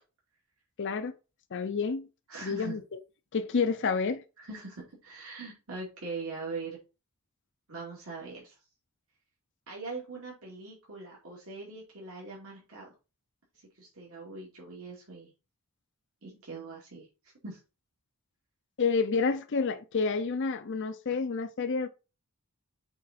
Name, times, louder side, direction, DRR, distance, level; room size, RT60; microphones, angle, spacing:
voice 1, 0.8-1.1 1.5-2.1 2.4-2.8 3.3-4.2 18.8-21.9, left 5 dB, 55° left, 0.5 m, -29 dB
voice 2, 2.3-2.7 4.4-6.8 7.7-8.6 9.7-12.9 13.8-15.3 16.2-17.1 17.4-17.6, right 3 dB, 70° right, 2.4 m, -41 dB
6.3 x 3.9 x 4.2 m
head